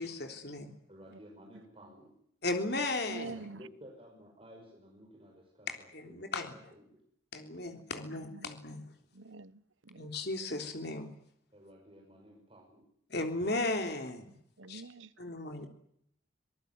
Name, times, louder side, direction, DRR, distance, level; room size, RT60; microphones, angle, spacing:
voice 1, 0.0-0.7 2.4-3.3 5.9-6.6 7.3-8.8 10.0-11.1 13.1-14.3 14.7-14.8 15.2-15.7, left 2 dB, 55° left, 3.4 m, -35 dB
voice 2, 0.9-2.1 3.2-7.0 11.5-12.9, equal, 30° right, 5.7 m, -54 dB
voice 3, 2.9-3.6 8.1-8.5 9.1-10.1 14.6-15.1, right 3 dB, 80° right, 1.0 m, -46 dB
25.0 x 19.0 x 9.5 m
head